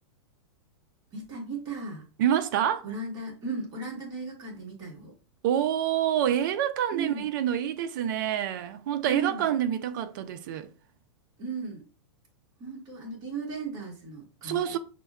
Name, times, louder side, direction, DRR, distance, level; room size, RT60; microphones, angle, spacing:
voice 1, 1.1-2.0 2.8-5.1 6.9-7.3 9.1-9.5 11.4-11.8 12.6-14.8, right 4 dB, 25° right, 1.4 m, -36 dB
voice 2, 2.2-2.8 5.4-10.7 14.4-14.8, right 10 dB, 45° right, 0.4 m, -27 dB
6.4 x 2.1 x 2.3 m
supercardioid pair, 160°, 15 cm